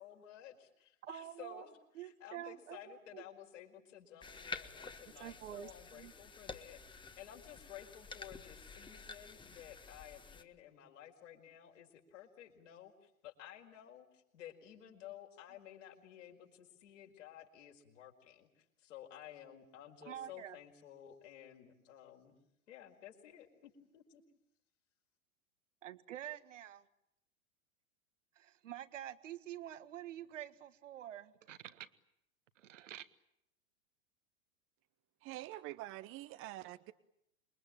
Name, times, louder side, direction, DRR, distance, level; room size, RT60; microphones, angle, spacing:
voice 1, 0.0-22.3 22.7-24.2, left 10 dB, 60° left, 2 dB, 5.0 m, -54 dB
voice 2, 1.0-1.7 2.0-3.2 5.2-6.1 20.1-20.6 25.8-26.9 28.4-31.9 32.6-33.1, right 11 dB, 60° right, 12 dB, 1.7 m, -48 dB
sound 1, 4.2-10.4, left 4 dB, 10° left, 1.5 m, -50 dB
voice 3, 35.2-36.9, right 16 dB, 30° right, 13 dB, 1.0 m, -46 dB
27.5 x 23.0 x 8.7 m, 0.80 s
figure-of-eight pair, 95°, 41 cm